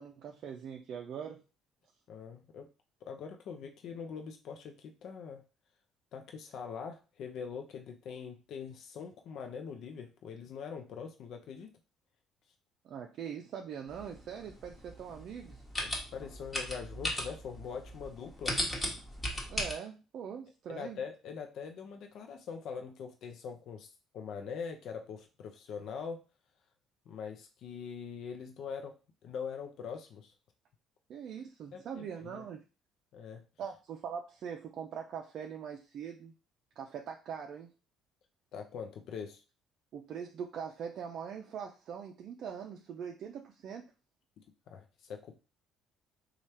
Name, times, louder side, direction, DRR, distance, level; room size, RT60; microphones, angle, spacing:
voice 1, 0.0-1.4 12.8-15.6 19.5-21.0 31.1-32.6 33.6-36.3 36.8-37.7 39.9-43.8, right 7 dB, 60° right, 2 dB, 0.4 m, -42 dB
voice 2, 2.1-2.7 3.0-5.4 6.1-11.7 15.8-18.6 20.7-23.9 24.1-26.2 27.1-29.0 29.2-30.3 31.7-32.4 33.1-33.4 38.5-39.4 44.7-45.4, left 6 dB, 65° left, 4 dB, 0.5 m, -43 dB
sound 1, 13.9-19.7, left 1 dB, 20° left, 1.2 m, -37 dB
3.2 x 2.4 x 4.2 m, 0.32 s
supercardioid pair, 85°, 0 cm